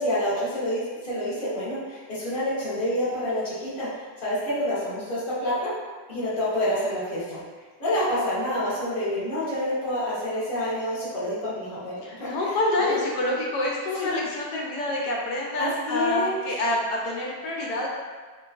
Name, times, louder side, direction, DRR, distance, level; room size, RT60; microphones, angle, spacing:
voice 1, 0.0-3.9 4.2-5.7 6.1-7.4 7.8-12.3 12.8-13.0 15.6-16.3, left 1 dB, 40° left, -13 dB, 0.9 m, -28 dB
voice 2, 12.0-17.9, left 1 dB, 85° left, -2 dB, 1.2 m, -27 dB
3.0 x 2.2 x 2.4 m, 1.4 s
omnidirectional pair, 1.7 m